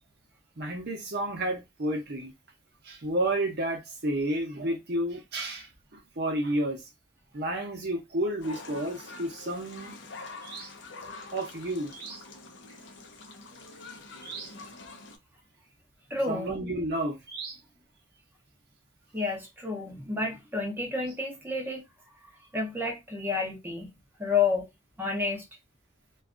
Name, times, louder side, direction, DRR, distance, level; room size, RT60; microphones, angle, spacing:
voice 1, 0.6-2.3 2.8-6.8 7.3-10.0 10.4-10.7 11.3-12.2 14.2-14.5 16.3-17.6, right 1 dB, 50° right, 0.7 m, -31 dB
sound 1, 8.4-15.2, left 3 dB, 60° left, 0.5 m, -45 dB
voice 2, 16.1-16.5 19.1-21.8 22.5-23.9 24.2-24.7 25.0-25.4, left 4 dB, 10° right, 0.6 m, -30 dB
2.6 x 2.3 x 2.4 m
head